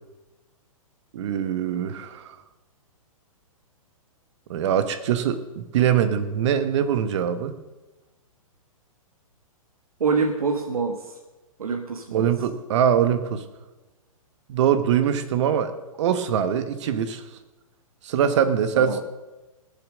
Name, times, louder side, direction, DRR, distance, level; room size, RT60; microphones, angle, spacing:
voice 1, 1.1-2.3 4.5-7.5 12.1-13.4 14.5-15.7 16.0-17.2 18.0-19.0, right 8 dB, 55° right, 11 dB, 1.3 m, -23 dB
voice 2, 10.0-11.2 11.6-12.3 15.5-15.6 18.7-19.0, right 4 dB, 85° right, 5 dB, 1.4 m, -26 dB
19.5 x 7.2 x 6.3 m, 1.1 s
hypercardioid pair, 135°, 18 cm